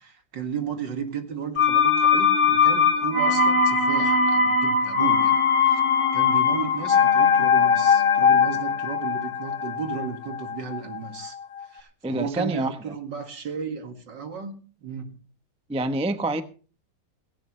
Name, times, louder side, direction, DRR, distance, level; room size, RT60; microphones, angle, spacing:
voice 1, 0.0-5.4 5.7-5.8 6.1-11.4 11.7-15.1, right 6 dB, 80° right, 2.7 m, -34 dB
sound 1, 1.6-11.3 11.6-11.7, left 5 dB, 45° left, 2.3 m, -20 dB
voice 2, 12.0-12.9 15.7-16.4, right 2 dB, 5° right, 0.5 m, -27 dB
17.0 x 16.5 x 3.3 m
omnidirectional pair, 1.9 m